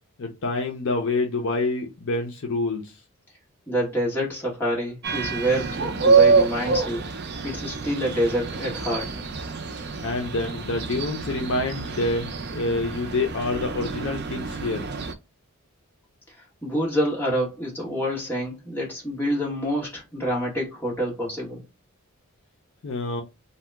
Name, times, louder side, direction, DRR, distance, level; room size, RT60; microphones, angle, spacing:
voice 1, 0.2-3.0 10.0-14.9 22.8-23.2, left 2 dB, 55° left, 0.5 m, -27 dB
voice 2, 3.7-7.0 7.4-9.1 16.3-21.6, equal, 10° left, 1.3 m, -27 dB
sound 1, 5.0-15.1, right 4 dB, 45° right, 0.4 m, -26 dB
2.8 x 2.1 x 3.3 m
head